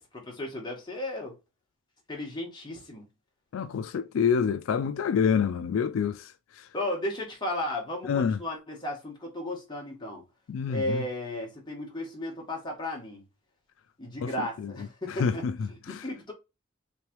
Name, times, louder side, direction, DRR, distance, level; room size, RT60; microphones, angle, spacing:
voice 1, 0.0-1.4 2.1-3.1 6.7-10.2 10.7-13.2 14.0-16.3, left 1 dB, 20° left, 1.3 m, -35 dB
voice 2, 3.5-6.2 8.1-8.4 10.5-11.0 14.2-14.3 14.6-14.7 15.2-15.5 15.9-16.0, left 6 dB, 80° left, 0.3 m, -27 dB
3.3 x 3.2 x 3.0 m
head